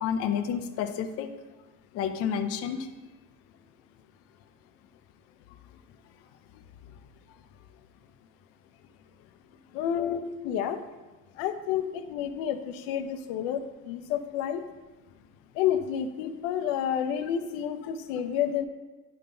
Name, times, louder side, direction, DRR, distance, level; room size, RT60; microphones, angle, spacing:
voice 1, 0.0-1.3 1.9-2.9, left 8 dB, 40° left, 6 dB, 0.5 m, -30 dB
voice 2, 9.7-10.8 11.4-14.6 15.5-18.6, left 9 dB, 85° left, 8 dB, 0.7 m, -30 dB
10.5 x 3.7 x 3.8 m, 1.2 s
cardioid pair, 140°, 36 cm